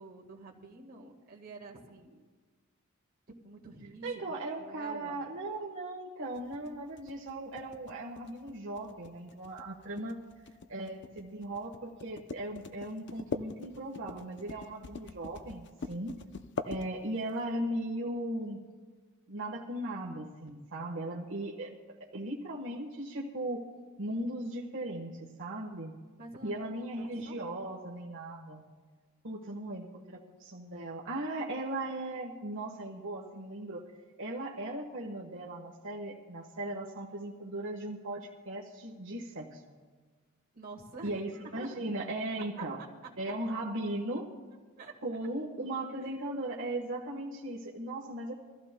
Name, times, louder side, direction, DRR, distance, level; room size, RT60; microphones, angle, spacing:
voice 1, 0.0-2.2 3.3-4.2 4.6-5.2 26.2-27.4 40.5-41.1 41.4-41.7 42.6-42.7 44.8-44.9 46.0-46.6, right 3 dB, 45° right, 0 dB, 1.7 m, -48 dB
voice 2, 4.0-10.2 10.7-16.1 16.6-18.6 19.3-21.7 22.0-23.6 24.0-25.9 26.4-28.6 29.2-33.9 34.2-39.6 41.0-42.8 43.2-44.3 45.0-48.3, right 1 dB, 60° right, -3 dB, 1.3 m, -38 dB
sound 1, 6.4-17.4, left 3 dB, 55° left, 0.6 m, -42 dB
24.5 x 15.0 x 2.2 m, 1.4 s
head